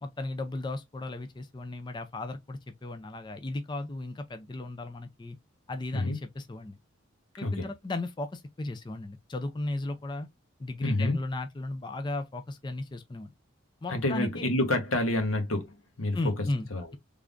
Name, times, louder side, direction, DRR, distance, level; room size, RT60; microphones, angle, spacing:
voice 1, 0.0-5.4 5.7-6.8 7.4-10.3 10.6-13.3 13.8-14.5 16.1-17.0, left 2 dB, 20° left, 0.4 m, -35 dB
voice 2, 10.8-11.2 13.9-16.2 16.7-16.9, left 2 dB, 90° left, 1.2 m, -28 dB
3.5 x 3.4 x 2.5 m
head